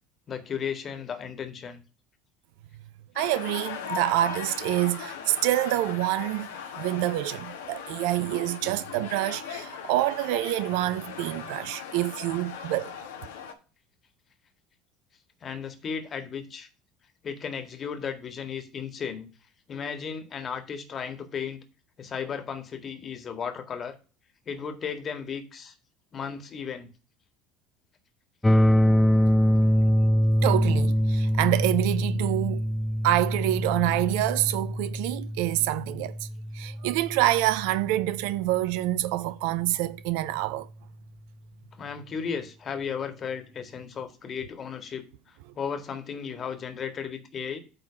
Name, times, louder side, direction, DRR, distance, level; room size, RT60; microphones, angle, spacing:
voice 1, 0.3-1.8 15.4-16.7 17.2-19.3 19.7-21.6 22.0-23.9 24.5-25.7 26.1-26.9 41.8-45.1 45.6-47.6, left 6 dB, 40° left, 1.8 m, -35 dB
sound 1, 3.2-13.5, left 7 dB, 75° left, 1.3 m, -39 dB
voice 2, 3.2-6.5 6.8-12.9 30.4-32.7 33.0-36.3 36.5-40.7, right 15 dB, 65° right, 0.4 m, -27 dB
sound 2, 28.4-38.4, equal, 10° left, 0.3 m, -24 dB
9.0 x 3.7 x 6.1 m
hypercardioid pair, 65°, 0 cm